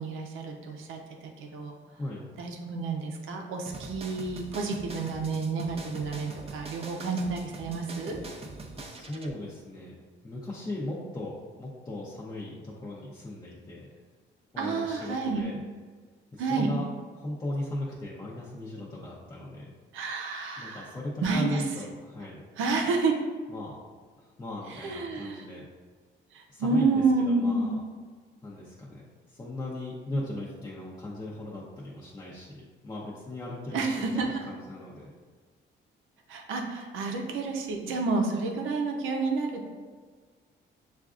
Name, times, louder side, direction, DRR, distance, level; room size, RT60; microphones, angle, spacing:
voice 1, 0.0-1.7 2.4-8.2 14.6-15.4 16.4-16.7 19.9-20.9 21.2-21.6 22.6-23.1 24.7-25.4 26.3-27.7 33.7-34.4 36.3-39.7, right 3 dB, 85° right, 2 dB, 0.7 m, -29 dB
voice 2, 1.9-2.3 8.7-9.9 10.2-13.9 14.5-15.6 16.3-16.9 17.1-19.7 20.6-22.4 23.5-23.8 24.1-25.6 26.5-27.8 28.4-29.0 29.3-35.1, left 1 dB, 20° left, -6 dB, 0.7 m, -37 dB
sound 1, 3.7-9.3, right 3 dB, 30° right, 0.6 m, -43 dB
6.7 x 2.5 x 2.4 m, 1.5 s
cardioid pair, 90°, 20 cm